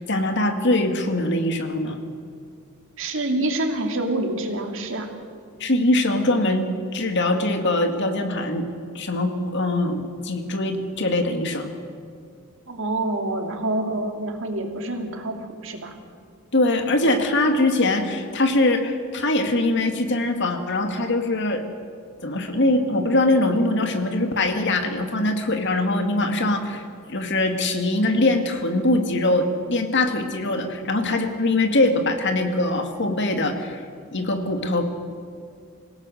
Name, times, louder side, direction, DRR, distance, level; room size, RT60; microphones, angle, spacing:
voice 1, 0.1-2.0 5.6-8.7 8.9-11.7 16.5-21.6 22.2-26.8 27.1-33.8 34.1-34.9, left 2 dB, 55° left, 6 dB, 2.1 m, -22 dB
voice 2, 3.0-5.1 12.7-15.9, right 2 dB, 60° right, 3 dB, 2.7 m, -27 dB
26.0 x 17.0 x 6.4 m, 2.4 s
head